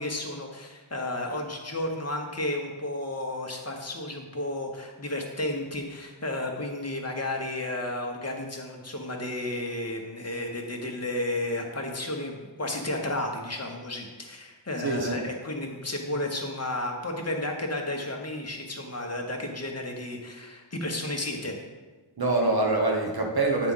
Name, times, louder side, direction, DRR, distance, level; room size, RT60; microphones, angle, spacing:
voice 1, 0.0-21.6, left 1 dB, 30° left, 2 dB, 1.2 m, -32 dB
voice 2, 14.8-15.2 22.2-23.7, right 2 dB, 45° right, 0 dB, 1.3 m, -25 dB
8.6 x 3.7 x 5.6 m, 1.3 s
wide cardioid pair, 85°, 49 cm